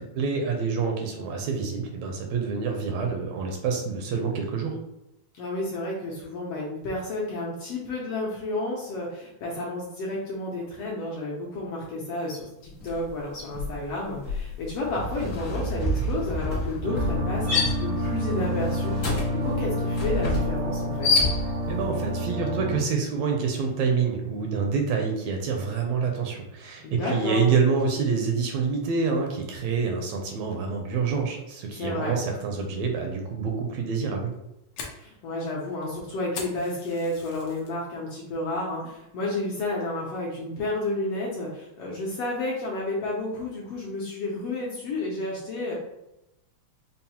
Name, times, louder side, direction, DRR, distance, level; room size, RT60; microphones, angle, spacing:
voice 1, 0.0-4.7 21.7-34.3, right 5 dB, 80° right, 2 dB, 1.8 m, -27 dB
voice 2, 5.4-21.1 26.8-27.5 31.8-32.1 35.0-45.7, left 2 dB, 75° left, -4 dB, 1.5 m, -31 dB
sound 1, 12.8-13.1 13.4-21.8, left 2 dB, 50° left, 0.9 m, -28 dB
sound 2, 16.8-22.8, equal, 50° right, 0.6 m, -28 dB
Fire, 34.2-37.7 38.1-38.5 38.9-39.0 39.6-39.9, left 5 dB, 90° left, 1.2 m, -41 dB
5.3 x 2.0 x 2.8 m, 0.88 s
omnidirectional pair, 3.3 m